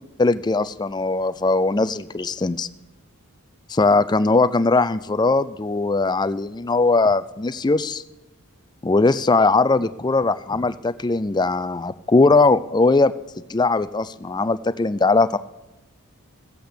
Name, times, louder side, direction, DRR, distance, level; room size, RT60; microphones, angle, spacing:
voice 1, 0.2-2.7 3.7-8.0 8.8-13.1 13.5-15.4, left 3 dB, 20° left, 14 dB, 0.4 m, -20 dB
15.5 x 8.1 x 6.7 m, 1.0 s
head